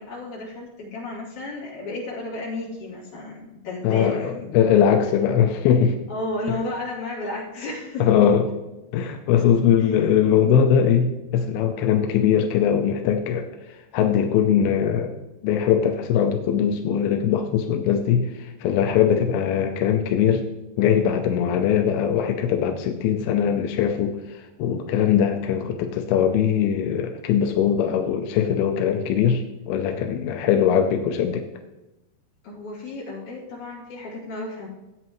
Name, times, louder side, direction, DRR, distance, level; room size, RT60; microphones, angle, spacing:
voice 1, 0.0-4.4 6.1-8.3 9.8-10.0 32.4-34.7, left 2 dB, 45° left, -6 dB, 3.9 m, -33 dB
voice 2, 3.8-6.0 6.5-6.6 8.0-8.4 8.9-13.5 13.9-15.2 15.4-20.4 20.8-29.4 29.7-31.5, left 8 dB, 85° left, 4 dB, 2.2 m, -21 dB
15.5 x 8.6 x 3.1 m, 1.0 s
omnidirectional pair, 5.1 m